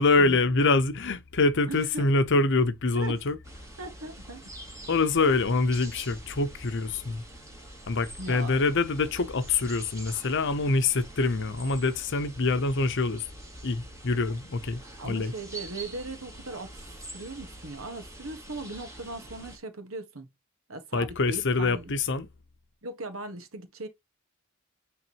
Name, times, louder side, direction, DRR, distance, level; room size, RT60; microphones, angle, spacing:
voice 1, 0.0-3.4 4.9-7.2 7.9-13.3 13.6-15.3 20.9-22.3, left 3 dB, 60° left, 0.8 m, -25 dB
voice 2, 1.7-2.1 2.9-3.2 3.8-4.4 5.3-5.4 8.2-8.6 15.0-16.9 17.1-20.3 20.7-21.9 22.8-23.9, right 2 dB, 75° right, 1.6 m, -38 dB
sound 1, 3.4-19.6, right 1 dB, 15° right, 2.4 m, -45 dB
9.0 x 3.8 x 3.0 m
head